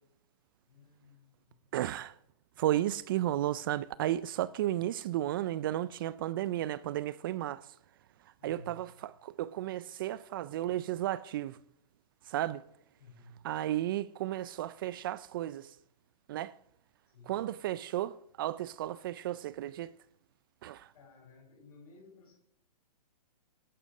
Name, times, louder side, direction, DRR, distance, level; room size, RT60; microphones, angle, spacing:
voice 1, 0.7-1.6 8.4-8.9 13.0-13.6 17.1-17.6 20.9-22.4, left 1 dB, 60° left, 7.1 m, -56 dB
voice 2, 1.7-2.1 2.6-7.7 8.4-11.6 12.3-12.6 13.4-15.7 16.3-16.5 17.3-19.9 20.6-20.9, right 13 dB, 35° right, 0.4 m, -33 dB
12.5 x 11.0 x 6.3 m
hypercardioid pair, 145°, 21 cm